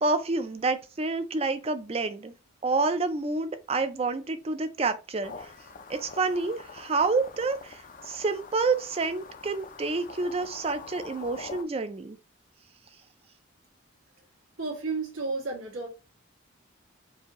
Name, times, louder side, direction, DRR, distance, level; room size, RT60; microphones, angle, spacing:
voice 1, 0.0-2.3 2.6-5.3 5.9-12.2, right 3 dB, 30° right, 0.4 m, -28 dB
sound 1, 5.2-11.6, left 4 dB, 40° left, 0.4 m, -45 dB
voice 2, 14.6-15.9, right 3 dB, 80° right, 1.8 m, -32 dB
4.7 x 2.7 x 3.0 m
head